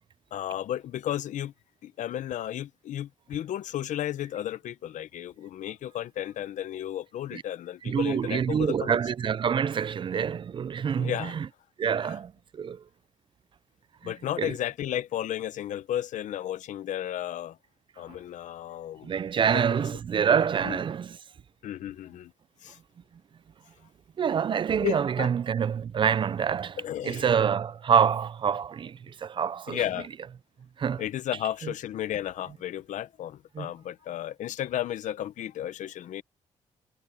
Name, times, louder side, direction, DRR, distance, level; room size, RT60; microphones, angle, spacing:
voice 1, 0.3-1.5 1.8-9.0 11.0-11.4 12.0-12.1 14.0-17.6 18.0-19.2 19.5-19.8 20.6-20.8 21.6-22.3 22.6-22.8 24.8-25.3 26.8-27.3 29.7-30.1 31.0-36.2, left 11 dB, 80° left, 0.9 m, -33 dB
voice 2, 7.9-11.5 11.8-12.8 14.0-14.1 14.4-14.5 19.0-21.2 24.2-26.8 27.0-29.8 30.8-31.0 31.6-31.7 33.6-33.7, right 7 dB, 40° right, 0.4 m, -26 dB
cardioid pair, 120°, 13 cm